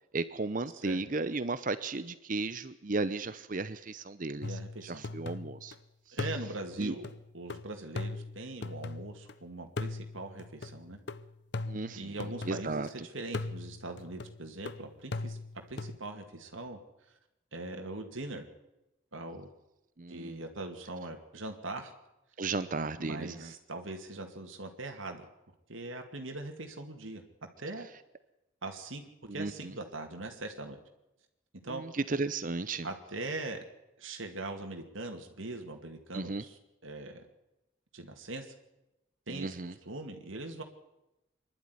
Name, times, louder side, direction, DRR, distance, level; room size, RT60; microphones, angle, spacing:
voice 1, 0.1-5.7 6.1-6.2 6.8-6.9 11.7-12.1 12.4-12.9 20.0-20.4 22.4-23.5 29.3-29.7 31.7-32.9 36.1-36.4 39.3-39.7, right 3 dB, 40° right, 13 dB, 0.7 m, -35 dB
sound 1, 4.4-5.8 6.2-9.3 9.8-12.9 13.3-16.0, left 3 dB, 55° left, 0.7 m, -40 dB
voice 2, 4.4-5.0 6.1-7.1 7.3-11.0 11.9-15.4 15.7-16.8 17.5-18.5 19.1-19.5 20.1-21.9 23.0-25.2 25.7-27.2 27.6-27.9 28.6-30.8 31.6-31.8 32.8-33.6 34.0-37.3 37.9-38.5 39.3-40.6, right 2 dB, 80° right, 4 dB, 2.5 m, -41 dB
24.5 x 11.5 x 9.8 m, 0.93 s
head